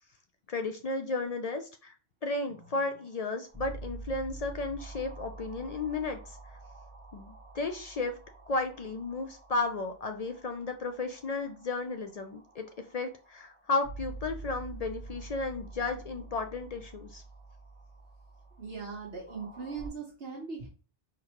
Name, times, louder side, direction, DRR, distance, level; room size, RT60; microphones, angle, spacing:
voice 1, 0.5-1.9 2.2-6.4 7.1-8.2 8.5-12.6 12.9-17.2, left 3 dB, 60° left, 5 dB, 0.4 m, -34 dB
sound 1, 2.5-19.9, right 3 dB, 10° left, 1.8 m, -48 dB
voice 2, 18.6-20.7, right 5 dB, 60° right, -2 dB, 1.2 m, -39 dB
4.3 x 3.7 x 2.9 m, 0.36 s
omnidirectional pair, 1.1 m